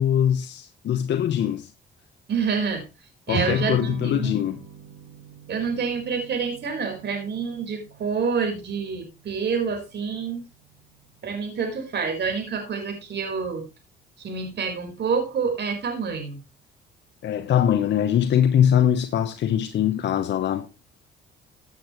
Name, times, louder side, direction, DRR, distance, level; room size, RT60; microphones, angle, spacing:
voice 1, 0.0-1.7 3.3-4.6 17.2-20.7, left 9 dB, 65° left, 0.9 m, -22 dB
voice 2, 2.3-2.8 3.3-4.4 5.5-10.4 11.2-13.6 14.2-16.4, right 5 dB, 60° right, 4.4 m, -27 dB
sound 1, 3.3-12.8, right 6 dB, 80° right, 2.9 m, -41 dB
15.5 x 8.3 x 3.1 m
cardioid pair, 90°, 20 cm